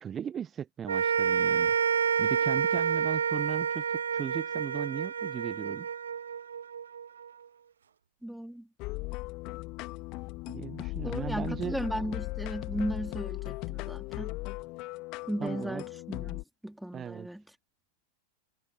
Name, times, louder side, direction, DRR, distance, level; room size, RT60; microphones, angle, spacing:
voice 1, 0.0-1.7 2.2-5.9 10.5-11.8 15.4-15.8 16.9-17.3, right 8 dB, 25° right, 1.1 m, -37 dB
sound 1, 0.9-7.3, right 7 dB, 70° right, 0.6 m, -29 dB
voice 2, 8.2-8.7 11.0-14.3 15.3-17.4, right 1 dB, ahead, 3.6 m, -36 dB
sound 2, 8.8-16.4, left 24 dB, 40° left, 2.1 m, -37 dB
figure-of-eight pair, 90°, 0 cm